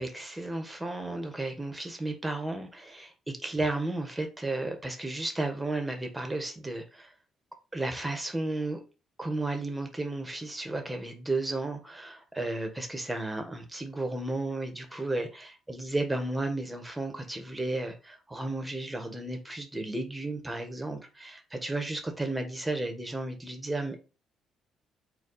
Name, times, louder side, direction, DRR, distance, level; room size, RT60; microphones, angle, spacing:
voice 1, 0.0-3.1 3.4-7.1 7.7-8.8 9.2-24.0, right 2 dB, 10° right, 1.1 m, -33 dB
4.1 x 2.3 x 4.0 m
cardioid pair, 80°, 0 cm